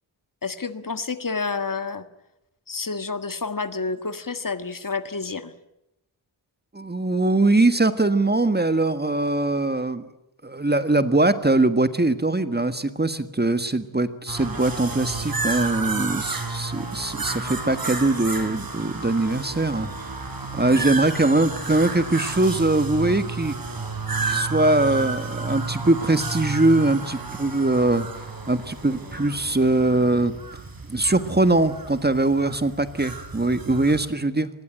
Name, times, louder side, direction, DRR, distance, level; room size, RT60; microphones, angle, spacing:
voice 1, 0.4-2.0 2.7-5.5, left 4 dB, 45° left, 11 dB, 1.7 m, -29 dB
voice 2, 6.7-10.1 10.4-19.9 20.5-23.5 24.2-28.1 28.5-30.3 30.9-34.5, right 2 dB, 20° right, 11 dB, 1.6 m, -22 dB
sound 1, 14.3-34.0, right 3 dB, 50° right, 4.6 m, -32 dB
25.5 x 20.5 x 8.8 m, 0.87 s
wide cardioid pair, 100°, 46 cm